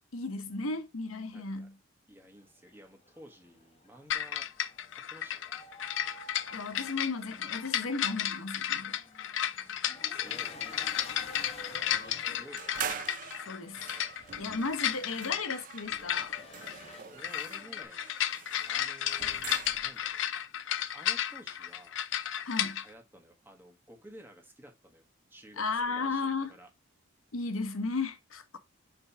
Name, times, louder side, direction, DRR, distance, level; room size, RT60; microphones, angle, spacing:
voice 1, 0.1-1.7 6.5-9.0 12.3-12.4 13.5-13.8 14.4-16.4 22.4-22.8 25.6-26.5 27.3-28.6, left 3 dB, 90° left, 1.0 m, -35 dB
voice 2, 1.3-1.7 2.1-4.5 4.9-5.4 9.5-10.5 11.8-12.8 15.0-15.1 17.1-18.1 18.7-20.2 20.9-22.0 22.8-25.0 25.3-26.7, equal, 10° right, 1.4 m, -53 dB
sound 1, 2.4-17.8, left 1 dB, 30° left, 1.2 m, -52 dB
sound 2, 4.1-22.8, left 10 dB, 60° left, 0.5 m, -33 dB
sound 3, 12.6-20.1, right 8 dB, 40° right, 0.5 m, -43 dB
7.1 x 3.3 x 4.6 m
head